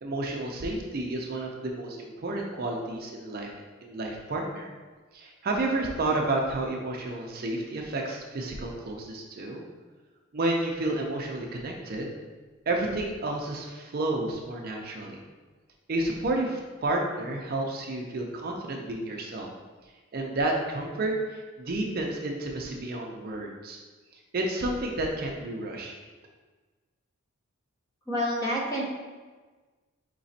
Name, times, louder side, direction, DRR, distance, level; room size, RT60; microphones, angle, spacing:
voice 1, 0.0-3.5 3.8-4.7 5.1-9.6 10.3-12.2 12.7-15.2 15.9-19.5 20.1-23.8 24.3-26.0, right 2 dB, 45° right, 0 dB, 0.4 m, -31 dB
voice 2, 28.1-28.8, equal, 15° left, -3 dB, 0.6 m, -28 dB
4.9 x 3.0 x 2.7 m, 1.3 s
head